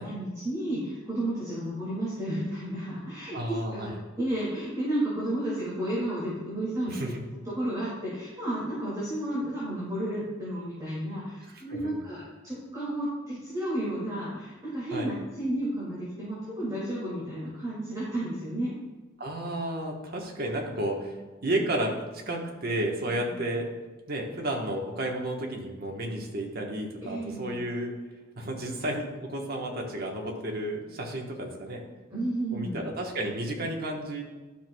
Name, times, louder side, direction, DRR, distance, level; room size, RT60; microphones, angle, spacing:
voice 1, 0.0-7.0 7.6-18.7 23.2-23.4 27.0-27.6 32.1-32.8, right 1 dB, 20° right, -8 dB, 2.3 m, -32 dB
voice 2, 3.3-3.9 6.9-7.1 11.5-12.0 14.9-15.1 19.2-21.9 22.3-23.7 24.1-27.9 28.4-31.9 32.5-34.2, right 1 dB, 50° right, 0 dB, 1.2 m, -32 dB
11.5 x 6.1 x 2.3 m, 1.2 s
head